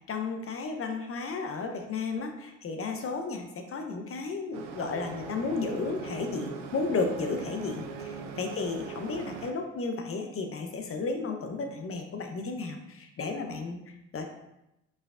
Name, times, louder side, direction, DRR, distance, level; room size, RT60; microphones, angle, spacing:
voice 1, 0.1-13.8 14.1-14.2, left 4 dB, 35° left, 5 dB, 0.8 m, -33 dB
sound 1, 4.5-9.5, right 5 dB, 75° right, 0.6 m, -40 dB
4.9 x 4.3 x 2.5 m, 0.88 s
hypercardioid pair, 55°, 36 cm